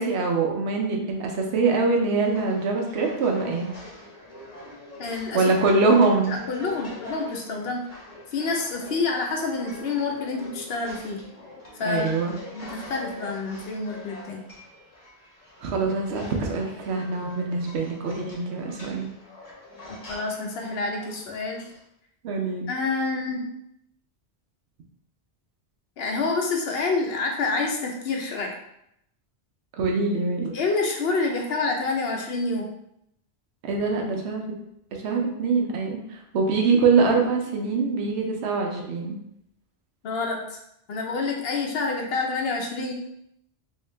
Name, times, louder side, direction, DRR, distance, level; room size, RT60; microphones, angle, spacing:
voice 1, 0.0-3.7 5.3-6.4 11.8-12.3 15.6-19.1 22.2-22.7 29.8-30.6 33.6-34.6 34.9-39.2, right 4 dB, 80° right, 1 dB, 0.9 m, -24 dB
sound 1, 2.2-21.8, left 2 dB, 35° left, 1.0 m, -43 dB
voice 2, 5.0-5.4 6.3-7.8 8.3-11.2 11.8-12.1 12.5-14.4 19.9-21.7 22.7-23.5 26.0-28.5 30.5-32.6 40.0-40.6 40.9-42.9, left 3 dB, 65° left, 1 dB, 0.9 m, -28 dB
3.1 x 2.8 x 3.2 m, 0.77 s
omnidirectional pair, 1.1 m